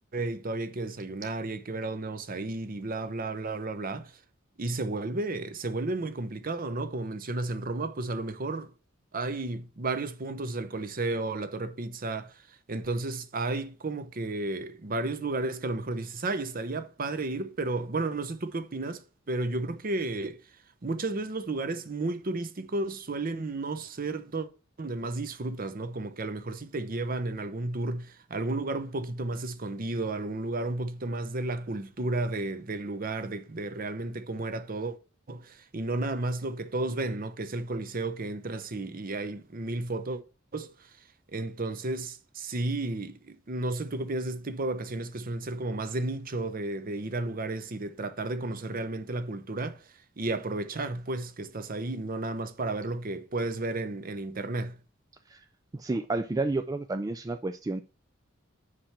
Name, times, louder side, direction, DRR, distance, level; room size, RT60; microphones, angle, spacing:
voice 1, 0.1-4.1 4.6-8.7 9.1-12.4 12.7-20.4 20.8-24.5 24.8-35.0 35.3-40.2 40.5-40.7 41.3-49.8 50.2-54.8, right 2 dB, 45° right, 0.7 m, -33 dB
voice 2, 55.7-57.8, right 2 dB, 20° right, 0.3 m, -30 dB
5.7 x 4.9 x 5.8 m
head